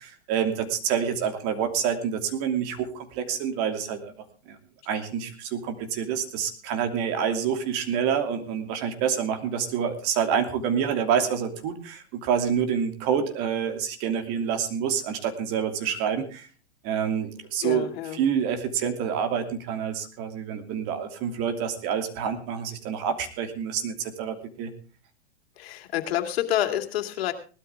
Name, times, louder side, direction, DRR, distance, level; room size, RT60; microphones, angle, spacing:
voice 1, 0.0-4.1 4.5-4.6 4.9-16.5 16.8-24.7, right 7 dB, 45° right, 6 dB, 2.9 m, -27 dB
voice 2, 17.6-18.2 25.6-27.3, left 12 dB, 65° left, 5 dB, 2.7 m, -28 dB
19.0 x 12.5 x 3.6 m, 0.36 s
hypercardioid pair, 125°, 33 cm